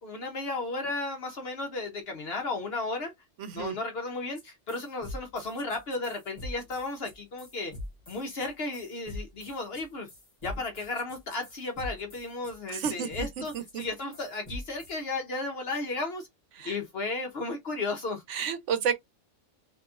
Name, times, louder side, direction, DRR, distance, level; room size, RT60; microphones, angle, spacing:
voice 1, 0.0-3.1 3.5-7.7 8.1-10.1 10.4-16.3 16.6-18.2, left 3 dB, 60° left, 0.9 m, -34 dB
voice 2, 3.4-3.8 12.7-13.8 16.6-16.7 18.3-18.9, right 7 dB, 75° right, 1.0 m, -31 dB
sound 1, 4.3-4.4 4.7-15.0, left 1 dB, 35° left, 1.5 m, -43 dB
3.9 x 2.7 x 2.4 m
omnidirectional pair, 1.3 m